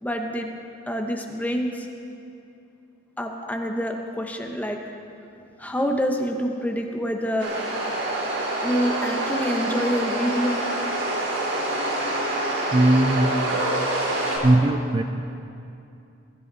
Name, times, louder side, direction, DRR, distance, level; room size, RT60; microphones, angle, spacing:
voice 1, 0.0-0.5 0.9-1.9 3.2-4.8 5.6-7.5 8.6-10.6, equal, 10° left, 3 dB, 1.1 m, -26 dB
sound 1, 7.4-14.4, right 1 dB, 80° right, 4.3 m, -26 dB
voice 2, 12.7-13.6 14.4-15.0, right 1 dB, 25° right, 5 dB, 0.5 m, -19 dB
21.0 x 14.0 x 4.1 m, 2.6 s
head